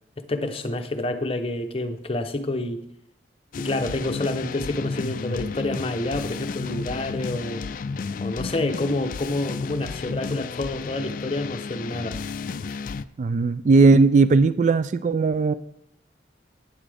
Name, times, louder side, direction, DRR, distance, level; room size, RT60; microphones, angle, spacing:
voice 1, 0.2-2.8 3.6-7.8 8.2-12.2, left 2 dB, 30° left, 0.8 m, -28 dB
sound 1, 3.5-13.0, left 4 dB, 50° left, 0.3 m, -32 dB
voice 2, 13.2-15.5, right 4 dB, 40° right, 0.3 m, -18 dB
11.0 x 9.3 x 3.4 m
head